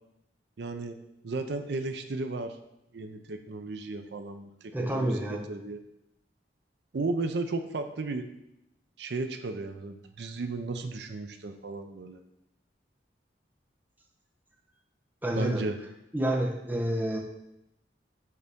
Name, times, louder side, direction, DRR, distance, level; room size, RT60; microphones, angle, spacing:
voice 1, 0.6-1.0 1.2-2.6 2.9-5.8 6.9-8.3 9.0-12.2 15.4-15.8, right 3 dB, 70° right, 7 dB, 0.5 m, -34 dB
voice 2, 4.7-5.5 15.2-15.6 16.1-17.2, right 1 dB, 10° right, 0 dB, 0.8 m, -28 dB
6.6 x 4.0 x 3.6 m, 0.85 s
head